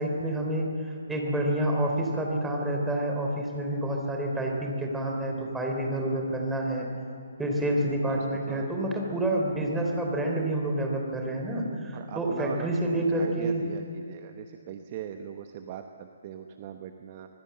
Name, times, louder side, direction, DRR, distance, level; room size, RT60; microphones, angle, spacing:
voice 1, 0.0-6.9 7.4-13.6, right 1 dB, 5° right, 0 dB, 3.5 m, -28 dB
voice 2, 8.1-8.7 11.9-12.7 13.1-17.3, right 10 dB, 30° right, 7 dB, 1.0 m, -40 dB
25.0 x 20.0 x 7.6 m, 2.5 s
figure-of-eight pair, 135°, 0 cm